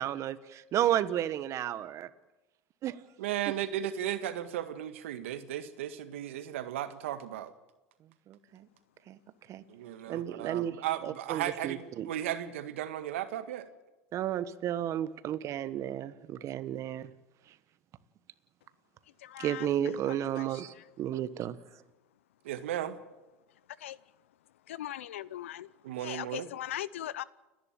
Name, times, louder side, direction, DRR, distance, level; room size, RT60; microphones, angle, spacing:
voice 1, 0.0-2.1 2.8-3.0 8.3-8.7 9.1-9.2 9.5-9.6 10.1-10.7 11.0-12.1 14.1-17.1 19.4-21.6, right 11 dB, 50° right, 14 dB, 1.3 m, -32 dB
voice 2, 3.2-7.5 9.7-13.7 22.4-23.0 25.8-26.5, right 11 dB, 80° right, 10 dB, 1.8 m, -35 dB
voice 3, 19.2-19.7 20.1-20.9 23.7-24.0 24.7-27.2, left 12 dB, 85° left, 20 dB, 0.7 m, -40 dB
30.0 x 11.0 x 9.0 m, 1.1 s
hypercardioid pair, 90°, 7 cm